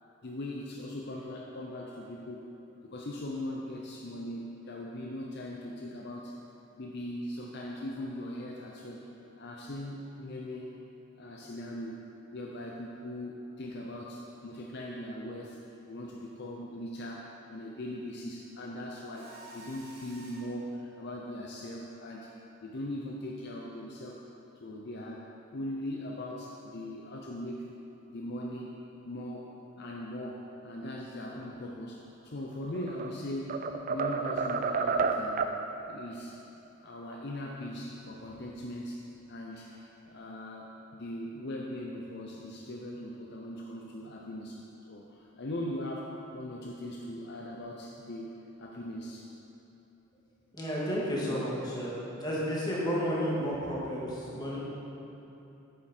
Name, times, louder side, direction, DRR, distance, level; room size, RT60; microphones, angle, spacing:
voice 1, 0.2-2.5 2.8-6.3 6.8-9.1 9.4-10.7 11.2-12.0 12.3-15.6 15.9-22.3 22.6-24.2 24.6-27.6 28.1-28.8 29.0-35.5 35.9-36.4 36.8-39.0 39.3-44.6 44.9-48.3 48.6-49.3, left 1 dB, 55° left, -1 dB, 0.6 m, -40 dB
Mechanisms, 19.1-20.6, right 1 dB, 85° right, 2.1 m, -50 dB
sound 1, 32.6-33.1 33.5-35.6, right 5 dB, 45° right, 0.4 m, -30 dB
voice 2, 50.5-51.9 52.2-54.6, equal, 20° left, -7 dB, 1.9 m, -31 dB
9.1 x 7.4 x 4.4 m, 3.0 s
head